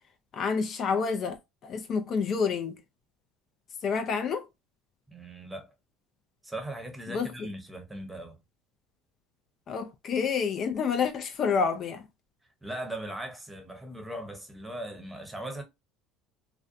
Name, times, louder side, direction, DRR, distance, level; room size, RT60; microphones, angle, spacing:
voice 1, 0.3-1.4 1.6-2.8 3.8-4.5 7.1-7.5 9.7-12.0, left 5 dB, 50° left, 0.4 m, -28 dB
voice 2, 5.1-5.7 6.4-8.4 12.6-15.6, right 1 dB, 10° right, 0.8 m, -39 dB
2.5 x 2.2 x 2.5 m
supercardioid pair, 85°, 0 cm